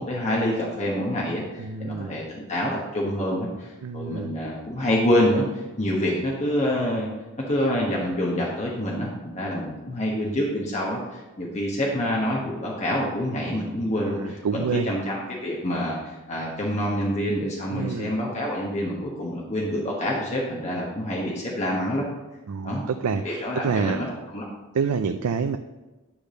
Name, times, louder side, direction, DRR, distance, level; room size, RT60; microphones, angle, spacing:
voice 1, 0.0-7.1 7.5-22.0 22.6-22.8 23.2-24.1 24.3-24.5, equal, 30° left, -3 dB, 1.2 m, -27 dB
voice 2, 1.6-2.2 3.8-4.3 13.9-14.9 17.7-18.1 22.5-24.1 24.7-25.6, right 5 dB, 80° right, 7 dB, 0.4 m, -28 dB
9.9 x 3.5 x 6.5 m, 1.1 s
head